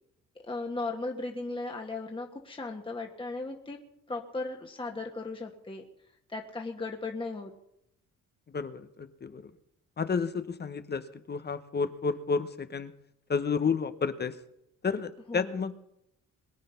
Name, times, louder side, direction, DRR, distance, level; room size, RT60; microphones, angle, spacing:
voice 1, 0.4-3.8 4.1-5.8 6.3-7.5 15.3-15.6, left 3 dB, 15° left, 1 dB, 1.6 m, -36 dB
voice 2, 8.5-9.5 10.0-12.9 13.3-14.4 14.8-15.8, left 5 dB, 35° left, 11 dB, 1.0 m, -31 dB
22.0 x 8.9 x 5.8 m, 0.80 s
cardioid pair, 90°, 30 cm